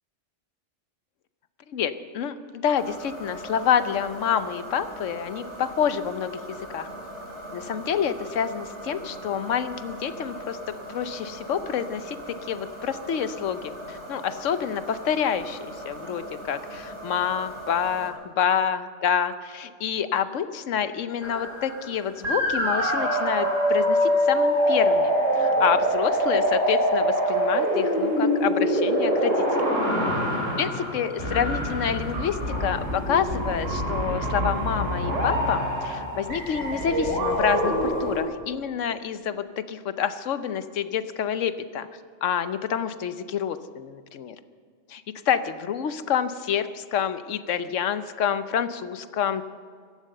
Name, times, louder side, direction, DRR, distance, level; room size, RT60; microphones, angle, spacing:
voice 1, 1.7-6.9 7.5-15.6 15.8-29.8 30.6-41.9 42.2-44.4 44.9-49.4, left 8 dB, 80° left, 11 dB, 1.1 m, -28 dB
sound 1, 2.8-18.1, right 1 dB, 65° right, 2.6 m, -40 dB
sound 2, 21.2-21.9 22.2-38.2, equal, 85° right, 4.1 m, -24 dB
16.0 x 12.5 x 6.6 m, 2.1 s
omnidirectional pair, 1.3 m